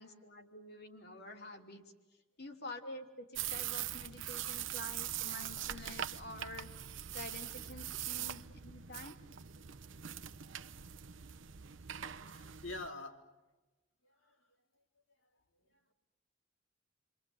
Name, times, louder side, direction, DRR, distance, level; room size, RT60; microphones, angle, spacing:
voice 1, 0.0-1.8 2.4-6.8 7.1-9.2, left 2 dB, 55° left, 3 dB, 3.1 m, -48 dB
sound 1, 3.3-12.9, right 11 dB, 80° right, 0.9 m, -42 dB
voice 2, 11.9-13.3 14.0-14.4 15.2-15.3 15.7-15.9, left 2 dB, 85° left, 2 dB, 3.9 m, -48 dB
29.5 x 24.0 x 8.0 m, 1.1 s
head